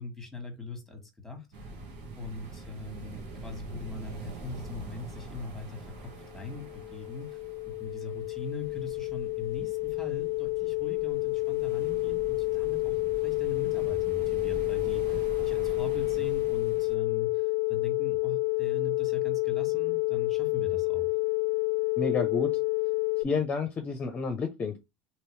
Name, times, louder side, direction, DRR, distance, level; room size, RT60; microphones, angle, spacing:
voice 1, 0.0-1.5 2.1-21.1, left 3 dB, 5° left, 1.6 m, -41 dB
sound 1, 1.5-16.9, right 2 dB, 75° right, 1.4 m, -45 dB
sound 2, 6.2-23.2, left 27 dB, 80° left, 0.3 m, -29 dB
voice 2, 22.0-22.5 23.2-24.8, left 4 dB, 30° left, 0.7 m, -30 dB
3.0 x 3.0 x 3.2 m
supercardioid pair, 115°, 5 cm